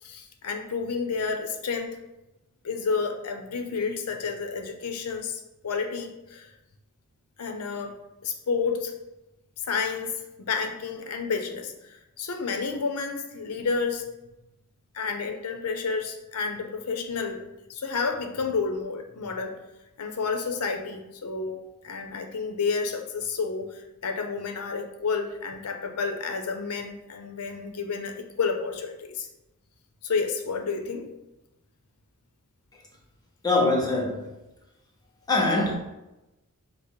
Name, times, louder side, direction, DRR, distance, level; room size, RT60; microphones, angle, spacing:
voice 1, 0.0-2.0 2.6-6.5 7.4-7.9 8.2-8.9 9.6-14.1 14.9-17.4 17.7-19.6 20.0-21.6 21.8-29.3 30.0-31.0, left 5 dB, 90° left, 4 dB, 0.6 m, -30 dB
voice 2, 33.4-34.4 35.3-35.7, left 2 dB, 15° left, -1 dB, 0.7 m, -23 dB
5.0 x 2.0 x 4.4 m, 0.97 s
head